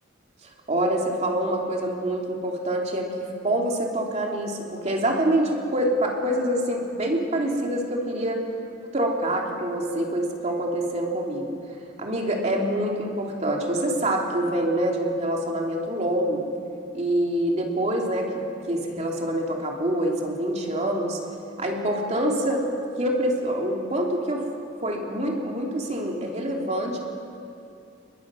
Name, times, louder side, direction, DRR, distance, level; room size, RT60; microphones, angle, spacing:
voice 1, 0.7-3.1 3.4-8.4 8.9-11.6 12.0-16.4 16.9-21.2 21.6-22.6 23.0-24.5 24.8-27.1, right 1 dB, 35° right, 0 dB, 2.9 m, -26 dB
29.0 x 21.5 x 6.3 m, 2.5 s
head